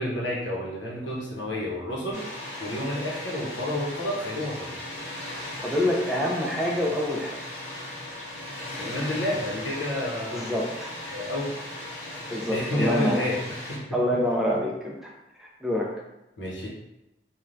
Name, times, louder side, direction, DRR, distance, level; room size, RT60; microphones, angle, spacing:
voice 1, 0.0-2.2 2.6-4.7 8.8-10.4 11.1-11.5 12.4-14.0 16.4-16.7, left 1 dB, 90° left, -4 dB, 0.9 m, -30 dB
Water, 2.1-13.8, left 1 dB, 40° left, 0.7 m, -37 dB
voice 2, 5.6-7.4 10.3-10.9 12.3-13.2 13.9-15.1 15.4-16.0, left 1 dB, ahead, -3 dB, 0.4 m, -26 dB
3.2 x 2.3 x 2.5 m, 0.92 s
head